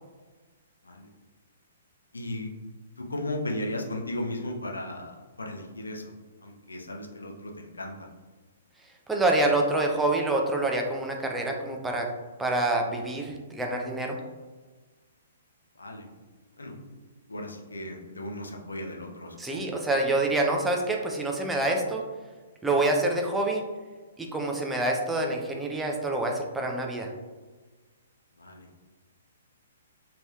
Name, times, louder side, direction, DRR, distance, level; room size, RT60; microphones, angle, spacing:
voice 1, 2.1-2.5 3.0-6.0 6.4-8.1 15.8-16.1 16.6-16.7 17.3-19.9 28.4-28.7, left 1 dB, 75° left, 1 dB, 0.5 m, -36 dB
voice 2, 9.1-12.1 12.4-14.2 19.4-22.0 22.6-23.6 24.2-27.1, right 2 dB, 5° right, 1 dB, 0.4 m, -26 dB
3.0 x 2.8 x 2.3 m, 1.3 s
figure-of-eight pair, 120°, 0 cm